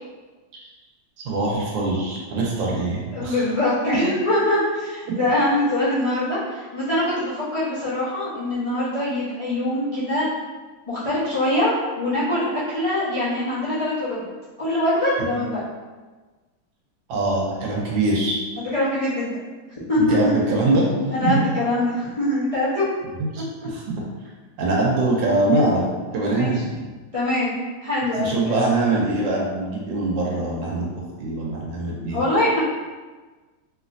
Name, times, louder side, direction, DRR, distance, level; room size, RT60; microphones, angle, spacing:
voice 1, 1.2-3.4 3.9-4.0 17.1-18.4 20.0-21.4 23.2-23.9 24.6-25.8 26.1-26.7 28.2-32.2, right 2 dB, 80° right, -3 dB, 1.3 m, -23 dB
voice 2, 3.1-10.3 10.9-14.2 14.6-15.6 18.6-19.5 19.9-20.3 21.1-22.9 26.3-26.5 27.1-27.6 27.8-28.7 32.1-32.6, left 1 dB, 65° left, -12 dB, 0.3 m, -23 dB
3.2 x 2.8 x 2.5 m, 1.3 s
omnidirectional pair, 2.1 m